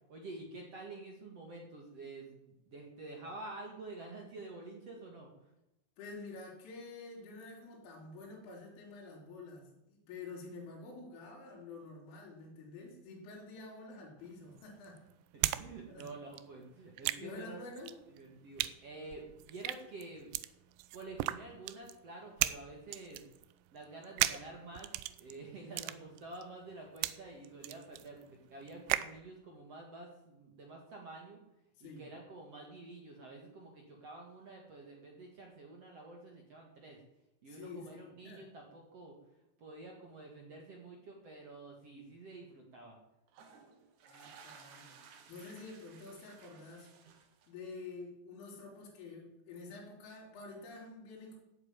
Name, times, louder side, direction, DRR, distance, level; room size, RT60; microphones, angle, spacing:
voice 1, 0.1-5.3 15.3-17.6 18.1-20.3 20.9-23.2 23.7-24.9 25.1-31.4 31.8-37.0 37.4-39.2 39.6-43.0, right 2 dB, 50° right, 0 dB, 1.9 m, -49 dB
voice 2, 6.0-15.1 15.9-16.1 17.1-18.0 31.8-32.1 37.5-38.5 44.0-45.0 45.3-46.9 47.5-51.4, left 3 dB, 75° left, -3 dB, 5.8 m, -48 dB
sound 1, 14.2-15.7 15.9-29.2, right 16 dB, 85° right, 2.5 m, -37 dB
sound 2, 43.3-47.8, right 6 dB, 65° right, 1.9 m, -58 dB
13.0 x 8.2 x 9.0 m, 0.88 s
omnidirectional pair, 5.7 m